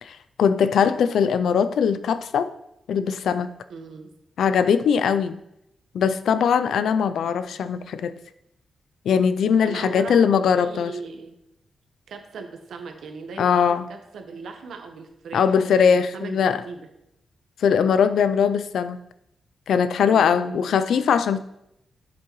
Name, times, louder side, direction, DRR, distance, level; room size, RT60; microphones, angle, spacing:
voice 1, 0.0-2.5 2.9-3.5 4.4-5.4 5.9-8.1 9.1-10.9 13.4-13.9 15.3-16.6 17.6-19.0 19.7-21.4, left 7 dB, 85° left, 13 dB, 0.4 m, -20 dB
voice 2, 3.7-4.1 7.1-7.4 9.6-11.4 12.1-16.8 20.1-20.8 21.1-21.2, right 4 dB, 80° right, 5 dB, 1.1 m, -39 dB
8.3 x 7.5 x 3.1 m, 0.82 s
wide cardioid pair, 160°, 0 cm